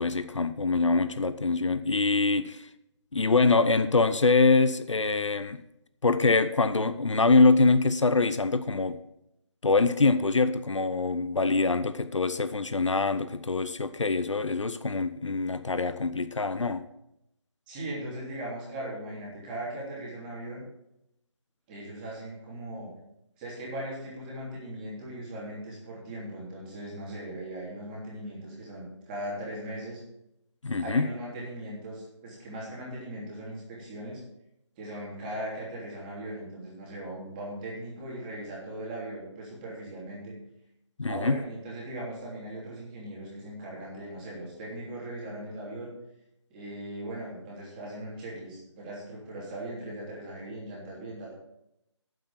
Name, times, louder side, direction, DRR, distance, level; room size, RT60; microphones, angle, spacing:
voice 1, 0.0-2.7 3.1-5.6 6.0-9.0 9.6-16.8 30.6-31.1 41.0-41.4, left 3 dB, 80° left, 0.8 m, -24 dB
voice 2, 17.7-20.6 21.7-22.9 23.4-30.0 30.8-34.2 34.8-40.3 41.0-45.9 46.5-51.3, right 1 dB, 15° right, 3.1 m, -39 dB
9.3 x 7.8 x 7.1 m
figure-of-eight pair, 160°, 15 cm